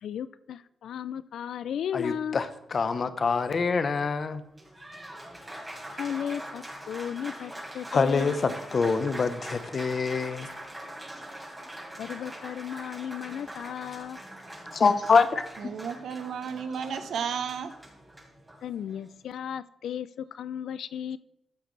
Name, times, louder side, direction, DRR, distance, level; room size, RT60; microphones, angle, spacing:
voice 1, 0.0-2.4 5.9-8.5 12.0-14.2 18.6-21.2, left 9 dB, 80° left, 16 dB, 0.4 m, -35 dB
voice 2, 1.9-4.4 7.9-8.3 8.7-10.5 14.7-15.4, left 4 dB, 55° left, 11 dB, 0.9 m, -25 dB
Applause, 4.4-19.1, right 1 dB, 15° right, 3.9 m, -43 dB
voice 3, 15.6-17.7, right 7 dB, 80° right, 10 dB, 0.9 m, -33 dB
14.0 x 7.9 x 3.3 m, 0.79 s
cardioid pair, 60°, 0 cm